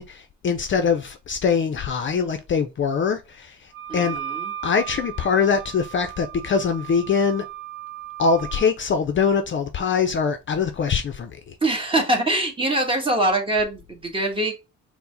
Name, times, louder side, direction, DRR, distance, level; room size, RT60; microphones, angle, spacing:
voice 1, 0.0-4.2 4.6-7.5 8.2-11.6, left 6 dB, 40° left, 0.5 m, -23 dB
Wind instrument woodwind instrument, 3.7-8.7, right 11 dB, 45° right, 0.6 m, -36 dB
voice 2, 3.9-4.5 11.6-14.5, right 1 dB, 15° right, 1.4 m, -23 dB
4.4 x 2.1 x 3.8 m
cardioid pair, 90°, 30 cm